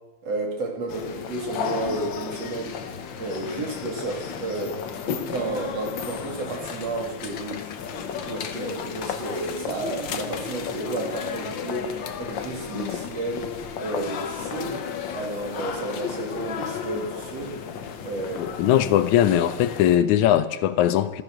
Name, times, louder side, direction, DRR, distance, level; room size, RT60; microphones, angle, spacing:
voice 1, 0.2-2.8 3.2-4.8 5.2-7.6 8.3-14.9 15.1-17.6 18.0-18.6, right 2 dB, 60° right, 3.6 m, -32 dB
sound 1, 0.9-20.0, left 7 dB, 60° left, 1.3 m, -33 dB
voice 2, 18.4-21.2, left 11 dB, 80° left, 2.2 m, -20 dB
14.5 x 13.5 x 6.5 m
omnidirectional pair, 3.4 m